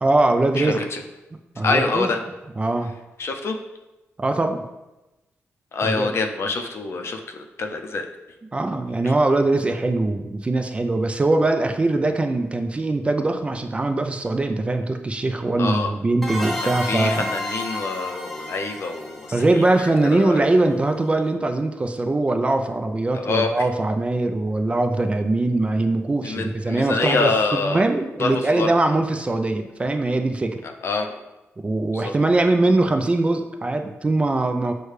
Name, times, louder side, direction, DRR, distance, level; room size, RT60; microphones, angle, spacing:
voice 1, 0.0-0.8 1.6-2.1 2.6-2.9 4.2-4.6 5.8-6.1 8.5-17.3 19.3-30.6 31.6-34.7, right 2 dB, 25° right, 6 dB, 0.3 m, -22 dB
voice 2, 0.6-1.0 1.6-2.2 3.2-3.6 5.7-8.1 15.6-15.9 16.6-20.4 23.1-23.5 26.2-27.8 28.2-28.7 30.8-31.2 31.9-32.1, left 3 dB, 60° left, 4 dB, 0.5 m, -26 dB
sound 1, 16.2-20.7, left 1 dB, ahead, 0.7 m, -32 dB
6.3 x 2.2 x 3.2 m, 1.0 s
cardioid pair, 100°, 5 cm